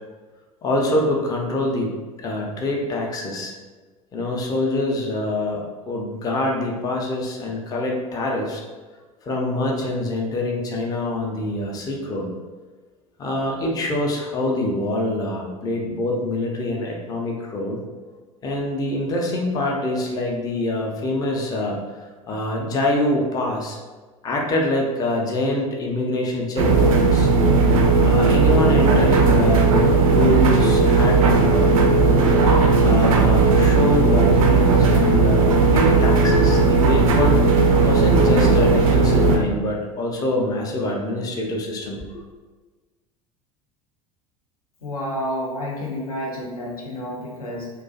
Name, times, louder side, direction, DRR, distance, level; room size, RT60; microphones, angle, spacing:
voice 1, 0.6-1.9 2.2-3.5 4.1-8.6 9.2-12.3 13.2-17.8 18.4-23.8 24.2-27.3 28.0-32.3 32.8-37.4 37.8-42.2, left 1 dB, 20° left, 0 dB, 0.4 m, -25 dB
sound 1, 26.6-39.4, right 3 dB, 65° right, 0.4 m, -16 dB
voice 2, 44.8-47.7, equal, 80° left, -3 dB, 0.5 m, -30 dB
2.4 x 2.2 x 2.4 m, 1.3 s
figure-of-eight pair, 75°, 19 cm